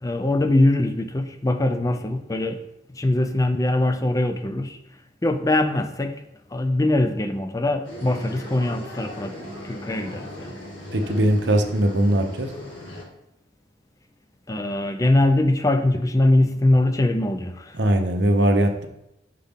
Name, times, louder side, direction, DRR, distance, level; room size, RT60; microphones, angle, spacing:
voice 1, 0.0-2.6 2.9-4.8 5.2-6.2 6.5-9.4 9.6-10.6 14.5-17.8, left 1 dB, 20° left, 8 dB, 0.5 m, -22 dB
sound 1, 7.8-13.0, left 1 dB, 90° left, 2.0 m, -38 dB
voice 2, 10.9-12.5 17.7-18.9, right 1 dB, 60° right, 4 dB, 0.8 m, -20 dB
6.6 x 5.6 x 3.6 m, 0.81 s
head